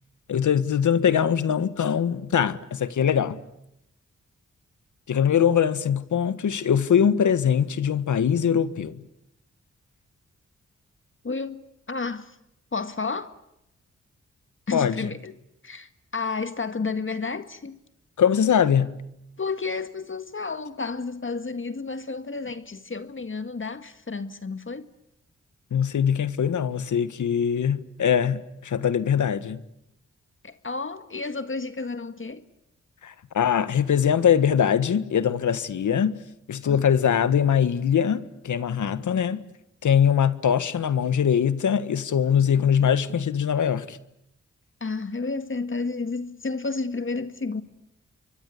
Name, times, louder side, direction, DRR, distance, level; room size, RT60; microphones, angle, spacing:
voice 1, 0.3-3.4 5.1-9.0 14.7-15.1 18.2-19.0 25.7-29.6 33.0-36.2 36.5-39.4 39.8-44.0, left 8 dB, 80° left, 1.5 m, -22 dB
voice 2, 11.2-12.4 12.7-13.3 14.7-15.4 15.6-17.8 19.4-24.9 30.4-32.4 36.6-36.8 40.1-40.2 44.8-47.6, left 4 dB, 40° left, 1.9 m, -31 dB
27.5 x 24.0 x 8.5 m
cardioid pair, 45°, 30 cm